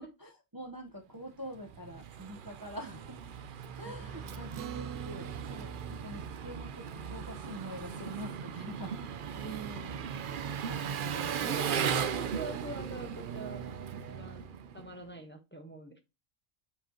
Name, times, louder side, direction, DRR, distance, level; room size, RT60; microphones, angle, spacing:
voice 1, 0.0-3.2 3.8-9.1 10.7-11.1, equal, 20° right, 1.2 m, -45 dB
Engine, 1.5-15.0, right 8 dB, 55° right, 0.7 m, -37 dB
voice 2, 3.8-4.6 9.3-10.2 10.9-13.6 13.9-16.0, right 1 dB, 10° left, 1.2 m, -44 dB
Acoustic guitar, 4.5-9.2, right 10 dB, 90° right, 1.0 m, -48 dB
7.7 x 4.9 x 3.0 m
omnidirectional pair, 1.3 m